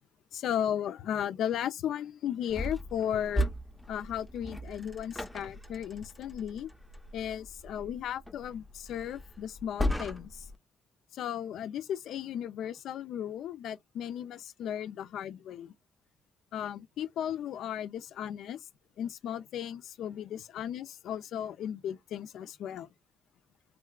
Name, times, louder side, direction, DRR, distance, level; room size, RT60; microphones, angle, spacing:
voice 1, 0.3-3.5 3.9-6.7 7.1-10.4 11.1-15.7 16.5-18.6 19.0-22.9, left 10 dB, 75° left, 0.4 m, -35 dB
sound 1, 2.5-10.6, equal, 5° left, 0.6 m, -37 dB
3.6 x 2.3 x 2.3 m
cardioid pair, 90°, 0 cm